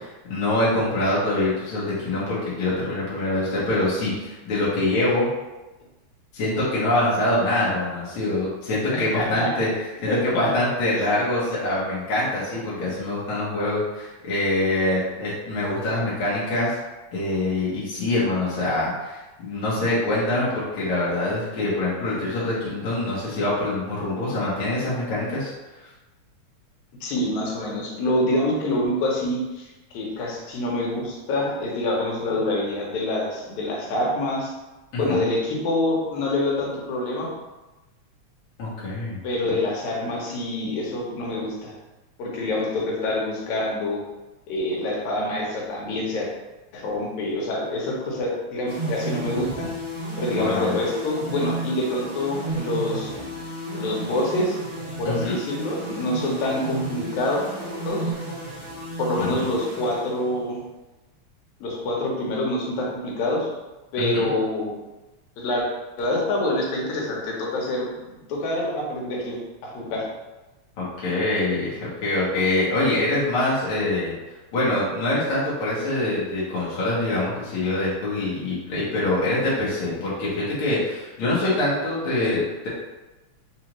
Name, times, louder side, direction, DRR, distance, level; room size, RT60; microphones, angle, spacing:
voice 1, 0.0-5.3 6.3-9.7 10.0-16.7 17.1-25.5 35.1-35.2 38.6-39.2 50.3-50.8 55.0-55.4 59.2-59.5 64.0-64.3 70.8-74.1 74.5-82.7, left 2 dB, 60° left, -8 dB, 1.5 m, -24 dB
voice 2, 8.9-9.5 10.1-10.5 27.0-29.7 29.9-34.5 35.0-37.3 39.2-41.7 42.2-44.0 44.5-46.3 46.7-49.7 50.2-53.2 53.8-54.6 55.0-57.4 57.8-58.1 59.0-60.6 61.6-63.5 63.9-64.8 65.4-65.7 66.0-70.1, left 1 dB, 75° left, -2 dB, 2.1 m, -26 dB
sound 1, 48.7-60.5, right 2 dB, 45° right, 0.4 m, -33 dB
4.8 x 2.4 x 3.0 m, 1.1 s
omnidirectional pair, 3.4 m